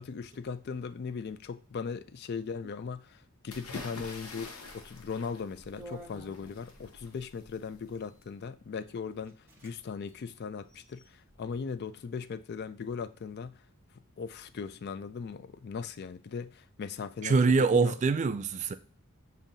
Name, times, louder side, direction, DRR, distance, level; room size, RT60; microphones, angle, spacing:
voice 1, 0.0-13.6 14.2-18.0, left 5 dB, 50° left, 0.3 m, -39 dB
sound 1, 3.5-8.3, left 3 dB, 90° left, 0.8 m, -47 dB
sound 2, 5.8-6.9 7.9-8.3 8.9-9.0 9.2-9.7 10.0-10.1 10.6-11.3, right 1 dB, 10° right, 1.0 m, -51 dB
voice 2, 17.2-18.7, right 4 dB, 35° right, 0.3 m, -24 dB
7.2 x 2.7 x 2.6 m
head